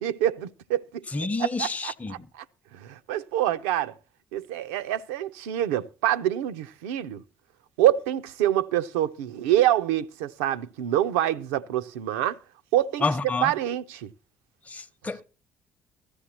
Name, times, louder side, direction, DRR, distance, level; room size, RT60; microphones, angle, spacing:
voice 1, 0.0-1.0 1.4-2.4 2.7-3.9 4.3-7.2 7.8-12.4 12.7-14.1, right 12 dB, 80° right, 0.5 m, -26 dB
voice 2, 1.1-2.1 13.0-13.5 14.7-15.2, left 3 dB, 20° left, 0.8 m, -29 dB
16.0 x 13.0 x 2.9 m
hypercardioid pair, 55°, 6 cm